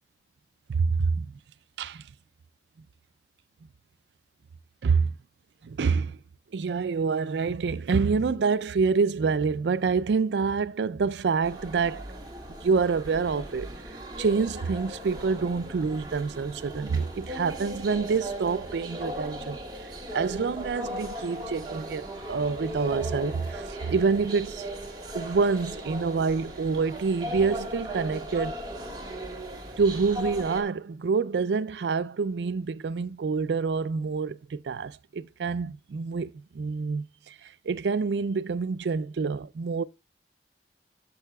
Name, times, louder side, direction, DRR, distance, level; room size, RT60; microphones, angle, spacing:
voice 1, 0.7-1.3 1.8-2.0 4.8-5.1 5.6-6.2 6.5-12.1 12.6-13.7 14.2-19.6 20.1-24.7 25.1-28.6 29.8-39.8, right 5 dB, 80° right, 0.4 m, -27 dB
sound 1, 11.4-30.6, equal, 25° right, 1.6 m, -38 dB
sound 2, 20.6-27.6, right 2 dB, 50° right, 1.8 m, -52 dB
12.5 x 5.5 x 2.3 m
head